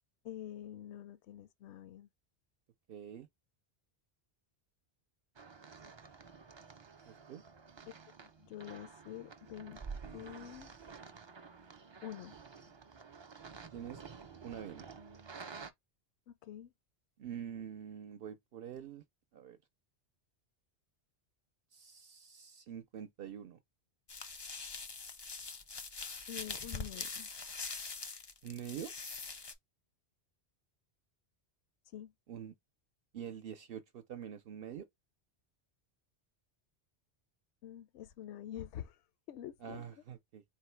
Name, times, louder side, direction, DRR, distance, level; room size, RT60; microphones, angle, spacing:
voice 1, 0.2-2.1 8.2-9.8 10.1-10.7 12.0-12.4 16.3-16.7 26.3-27.3 31.9-32.1 37.6-39.0 39.3-39.9, left 11 dB, 85° left, 0.9 m, -47 dB
voice 2, 2.9-3.3 7.1-7.4 13.7-14.0 14.4-14.9 17.2-19.0 19.3-19.6 21.7-23.6 28.4-28.9 32.3-32.5 33.1-34.9 39.6-40.4, right 9 dB, 65° right, 0.7 m, -45 dB
sound 1, 5.4-15.7, right 5 dB, 40° right, 0.4 m, -51 dB
sound 2, 24.1-29.5, left 4 dB, 35° left, 0.4 m, -43 dB
4.2 x 2.1 x 4.3 m
omnidirectional pair, 1.1 m